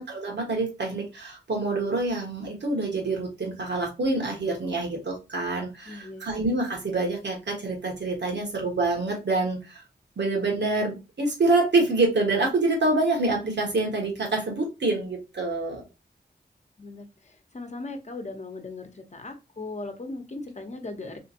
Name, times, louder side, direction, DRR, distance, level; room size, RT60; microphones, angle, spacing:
voice 1, 0.0-9.8 10.2-15.8, right 2 dB, 75° right, 0 dB, 1.6 m, -26 dB
voice 2, 5.9-6.3 16.8-17.1 17.5-21.2, left 2 dB, 40° left, 5 dB, 1.0 m, -38 dB
3.6 x 3.2 x 2.8 m, 0.27 s
wide cardioid pair, 65°, 18 cm